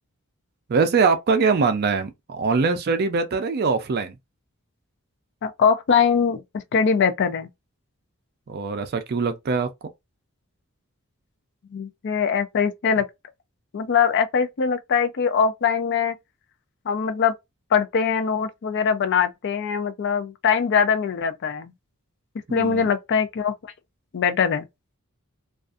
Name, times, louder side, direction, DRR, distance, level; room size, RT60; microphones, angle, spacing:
voice 1, 0.7-4.2 8.5-9.7 22.5-22.9, right 4 dB, 45° right, 0.4 m, -22 dB
voice 2, 5.4-6.4 6.7-7.5 11.7-13.1 13.7-16.2 16.9-17.3 17.7-21.7 22.5-23.5 24.1-24.7, left 6 dB, 55° left, 0.4 m, -22 dB
2.5 x 2.3 x 2.4 m
head